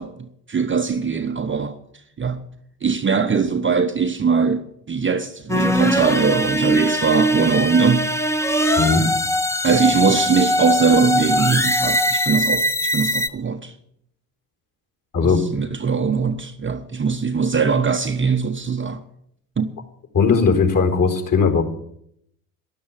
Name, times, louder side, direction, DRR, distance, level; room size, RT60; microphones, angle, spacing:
voice 1, 0.0-2.4 2.8-8.1 9.6-13.8 15.2-19.0 19.6-19.8, right 5 dB, 25° right, 1.1 m, -21 dB
sound 1, 5.5-13.3, equal, 5° left, 1.3 m, -21 dB
voice 2, 20.1-21.6, left 5 dB, 40° left, 4.5 m, -17 dB
13.0 x 11.5 x 7.4 m
hypercardioid pair, 65°, 50 cm